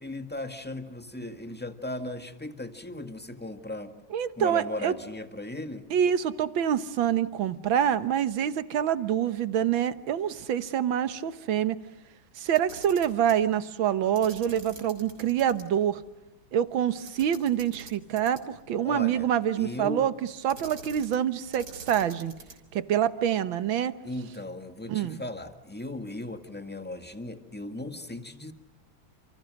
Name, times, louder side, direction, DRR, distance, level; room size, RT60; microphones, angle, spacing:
voice 1, 0.0-3.9 4.4-5.9 18.8-19.3 19.6-20.0 24.0-28.5, left 1 dB, 5° left, 7 dB, 1.6 m, -37 dB
voice 2, 4.1-5.0 5.9-11.8 12.4-16.0 16.5-20.1 20.4-22.3 22.7-23.9 24.9-25.2, right 9 dB, 75° right, 13 dB, 1.8 m, -26 dB
Camera, 12.5-13.4 14.2-15.6 16.0-16.1 17.1-18.7 20.5-21.3 21.5-22.7, right 3 dB, 55° right, 4.4 m, -46 dB
30.0 x 28.0 x 6.4 m, 0.97 s
omnidirectional pair, 2.2 m